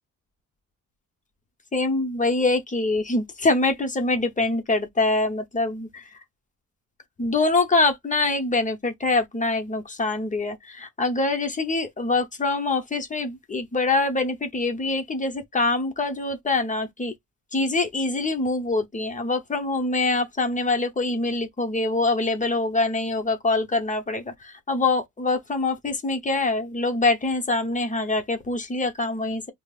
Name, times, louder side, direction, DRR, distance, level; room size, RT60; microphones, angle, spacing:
voice 1, 1.7-6.0 7.2-17.1 17.5-29.5, left 3 dB, 25° left, 0.8 m, -24 dB
5.1 x 2.0 x 2.4 m
cardioid pair, 140°, 33 cm